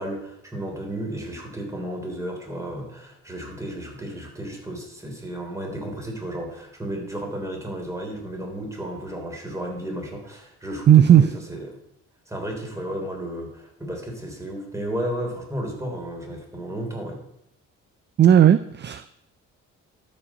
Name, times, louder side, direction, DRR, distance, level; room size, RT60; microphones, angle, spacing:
voice 1, 0.0-11.8 12.3-17.2, right 1 dB, 10° right, 1 dB, 3.4 m, -33 dB
voice 2, 10.9-11.2 18.2-19.1, right 10 dB, 35° right, 14 dB, 0.4 m, -14 dB
12.5 x 5.3 x 5.9 m, 0.78 s
cardioid pair, 90°, 30 cm